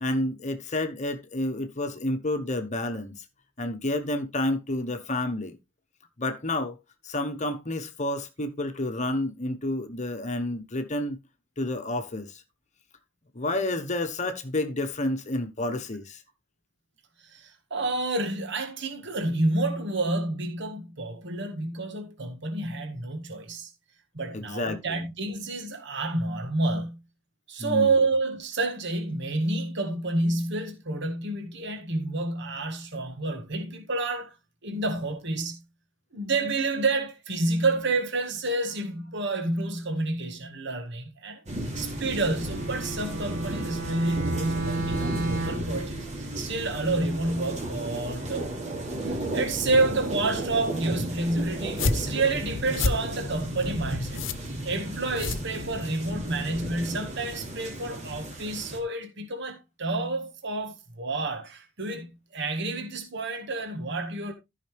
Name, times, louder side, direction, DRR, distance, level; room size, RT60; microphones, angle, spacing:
voice 1, 0.0-3.1 3.6-5.6 6.2-6.8 7.0-11.2 11.6-12.4 13.3-16.2 24.3-25.0 27.6-27.9, left 1 dB, 35° left, 1.1 m, -30 dB
voice 2, 17.2-23.7 24.1-27.0 27.5-34.3 34.6-35.6 36.1-41.4 41.7-64.3, right 2 dB, 60° right, 1.8 m, -29 dB
sound 1, 41.5-58.8, right 1 dB, 35° right, 2.9 m, -34 dB
Bowed string instrument, 42.4-45.8, right 2 dB, 80° right, 2.4 m, -32 dB
sound 2, 51.6-56.1, left 3 dB, 70° left, 0.9 m, -31 dB
14.0 x 5.8 x 3.4 m
head